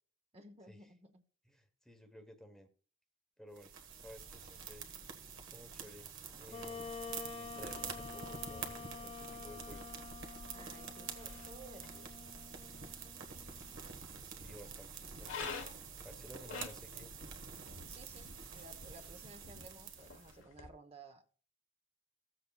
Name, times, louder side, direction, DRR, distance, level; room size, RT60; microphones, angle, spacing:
voice 1, 0.3-1.2 9.0-9.3 10.5-12.1 17.9-18.3 18.5-21.2, right 2 dB, 30° right, 7 dB, 0.9 m, -56 dB
voice 2, 1.4-2.7 3.4-3.7 4.0-4.9 5.5-6.1 6.4-6.9 7.4-10.1 14.3-17.1, equal, 5° left, 7 dB, 1.0 m, -55 dB
sound 1, 3.5-20.4, right 6 dB, 70° right, 1.4 m, -48 dB
Wind instrument woodwind instrument, 6.5-13.9, left 5 dB, 30° left, 0.6 m, -49 dB
sound 2, 7.6-20.7, left 5 dB, 65° left, 1.1 m, -52 dB
16.5 x 7.6 x 2.3 m, 0.41 s
head